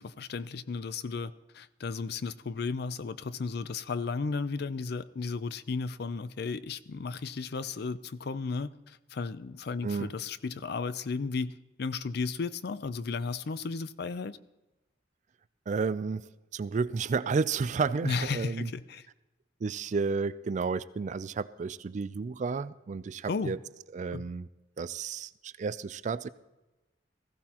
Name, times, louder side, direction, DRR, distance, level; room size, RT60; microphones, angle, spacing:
voice 1, 0.0-14.4 18.0-19.1 23.3-23.6 24.1-24.3, left 4 dB, 65° left, 15 dB, 0.5 m, -34 dB
voice 2, 15.7-16.3 16.5-18.7 19.6-23.6 23.9-24.5 24.8-26.3, right 4 dB, 40° right, 16 dB, 0.4 m, -31 dB
19.5 x 15.0 x 2.9 m, 1.1 s
head